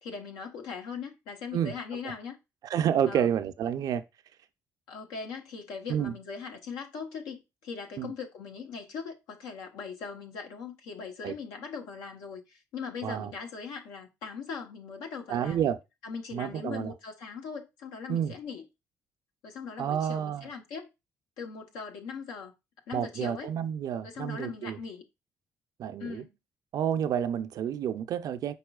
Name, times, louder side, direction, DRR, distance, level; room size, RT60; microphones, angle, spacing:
voice 1, 0.0-2.4 3.1-3.3 4.9-15.6 16.0-18.6 19.4-20.9 21.4-22.5 22.9-23.5 24.0-25.0 26.0-26.3, left 5 dB, 85° left, 1.0 m, -40 dB
voice 2, 2.6-4.0 5.9-6.1 8.0-8.1 11.2-11.3 13.0-13.3 15.3-15.8 16.3-16.9 18.1-18.4 19.8-20.5 22.9-24.8 25.8-26.2 26.7-28.5, right 9 dB, 65° right, 0.5 m, -29 dB
5.4 x 4.2 x 2.3 m
supercardioid pair, 55°, 7 cm